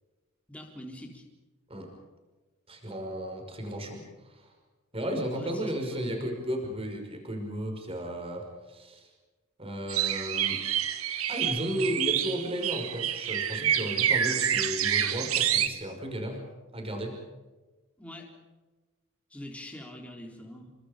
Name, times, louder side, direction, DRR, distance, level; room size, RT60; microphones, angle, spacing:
voice 1, 0.5-1.2 5.3-5.6 5.9-6.2 18.0-18.3 19.3-20.7, left 1 dB, 5° left, 0 dB, 4.1 m, -44 dB
voice 2, 2.7-4.5 4.9-9.1 9.6-10.6 11.3-16.4 16.7-17.2, equal, 25° right, 3 dB, 5.6 m, -34 dB
sound 1, 9.9-15.7, right 10 dB, 85° right, 1.7 m, -28 dB
29.5 x 25.0 x 5.2 m, 1.2 s
head